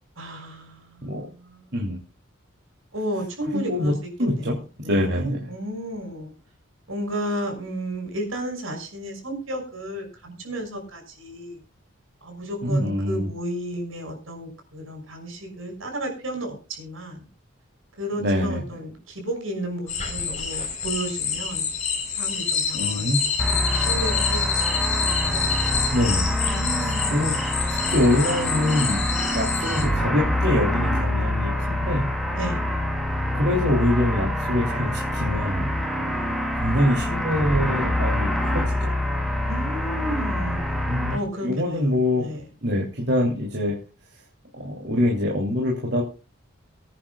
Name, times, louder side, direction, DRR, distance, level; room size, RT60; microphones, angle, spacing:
voice 1, 0.2-1.8 2.9-4.5 4.8-6.3 6.9-11.6 12.2-17.3 18.0-21.7 22.1-25.9 26.4-27.3 27.8-28.0 32.4-32.6 39.5-40.8 41.1-42.5, right 1 dB, 75° right, 3 dB, 6.3 m, -33 dB
voice 2, 3.5-3.9 4.2-4.6 4.8-5.4 12.6-13.3 18.2-18.6 22.8-23.2 25.9-26.3 27.1-27.3 27.9-29.0 29.3-32.1 33.4-35.7 36.0-36.1 36.6-39.0 40.9-41.2 41.4-42.3 42.6-43.8 44.5-46.0, left 1 dB, 55° right, -2 dB, 3.0 m, -24 dB
sound 1, 19.9-29.9, left 5 dB, 35° left, 4.1 m, -27 dB
sound 2, 23.4-41.2, left 1 dB, ahead, 2.4 m, -26 dB
24.0 x 10.0 x 2.4 m, 0.33 s
head